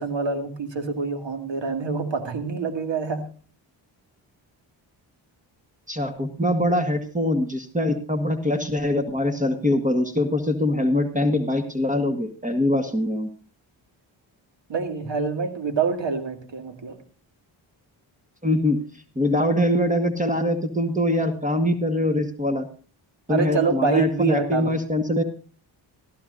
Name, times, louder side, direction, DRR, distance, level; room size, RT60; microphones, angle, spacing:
voice 1, 0.0-3.2 14.7-17.0 23.3-24.7, right 5 dB, 60° right, 6 dB, 2.3 m, -26 dB
voice 2, 5.9-13.3 18.4-18.8 19.1-22.7 23.3-25.2, left 1 dB, 15° right, 6 dB, 1.6 m, -23 dB
16.0 x 13.0 x 2.6 m, 0.39 s
supercardioid pair, 50°, 50 cm